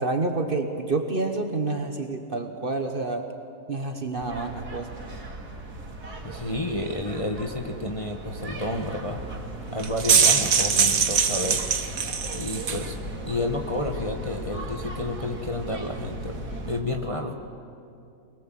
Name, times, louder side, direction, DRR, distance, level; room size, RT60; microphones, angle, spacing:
voice 1, 0.0-3.3 3.7-5.0, right 3 dB, 35° right, 5 dB, 1.3 m, -28 dB
sound 1, 4.2-16.8, right 1 dB, 75° right, 2.9 m, -37 dB
voice 2, 6.2-9.2 9.7-11.6 12.3-13.0 13.3-17.3, left 1 dB, 25° left, 3 dB, 1.1 m, -30 dB
sound 2, 9.8-12.9, right 6 dB, 60° right, 1.6 m, -22 dB
23.0 x 21.5 x 7.7 m, 2.6 s
omnidirectional pair, 1.7 m